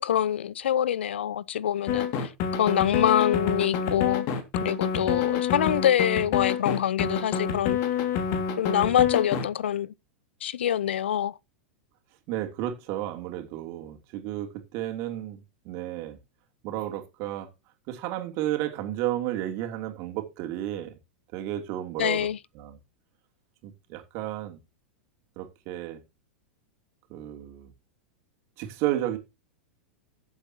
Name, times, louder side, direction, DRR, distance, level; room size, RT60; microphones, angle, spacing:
voice 1, 0.0-2.1 2.6-4.3 4.6-7.8 8.6-9.9 10.4-11.3 22.0-22.4, left 10 dB, 70° left, 0.5 m, -25 dB
sound 1, 1.9-9.5, left 7 dB, 45° left, 2.3 m, -27 dB
voice 2, 5.0-5.3 12.3-16.2 16.6-17.5 17.9-20.9 21.3-22.3 22.5-22.8 23.6-24.6 25.4-26.0 27.1-27.7 28.6-29.2, right 13 dB, 45° right, 3.0 m, -32 dB
15.0 x 8.0 x 2.9 m
figure-of-eight pair, 95°, 6 cm